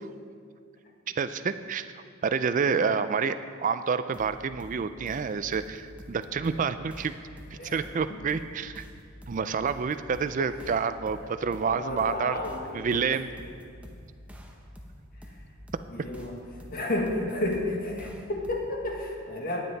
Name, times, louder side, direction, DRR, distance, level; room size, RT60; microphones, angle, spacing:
voice 1, 1.2-1.9 2.2-7.1 7.6-8.8 9.3-12.4 12.7-13.3, right 5 dB, 35° right, 11 dB, 0.3 m, -28 dB
sound 1, 4.1-18.9, equal, 5° right, 0.7 m, -47 dB
voice 2, 11.2-13.0 15.9-16.4 16.7-19.6, left 1 dB, 40° left, 0 dB, 1.6 m, -32 dB
18.5 x 7.7 x 4.0 m, 2.2 s
head